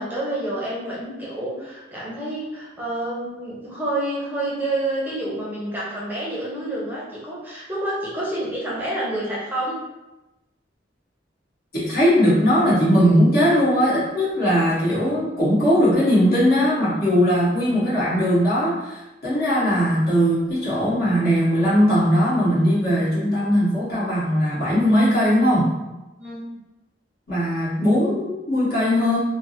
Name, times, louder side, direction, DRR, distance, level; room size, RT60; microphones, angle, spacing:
voice 1, 0.0-9.8 26.2-26.4, right 1 dB, 10° right, -7 dB, 0.6 m, -28 dB
voice 2, 11.7-25.7 27.3-29.2, equal, 60° left, -9 dB, 1.3 m, -19 dB
3.3 x 2.0 x 2.7 m, 1.0 s
head